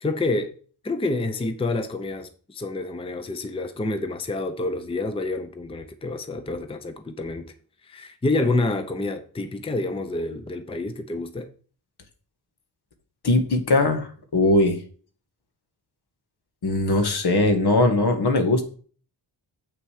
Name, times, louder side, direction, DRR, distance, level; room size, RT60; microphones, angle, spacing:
voice 1, 0.0-0.5 0.8-7.5 7.8-11.5, left 2 dB, 15° left, 0.6 m, -28 dB
voice 2, 13.2-14.8 16.6-18.6, left 2 dB, 65° left, 1.5 m, -20 dB
7.6 x 6.0 x 4.9 m
wide cardioid pair, 120°, 42 cm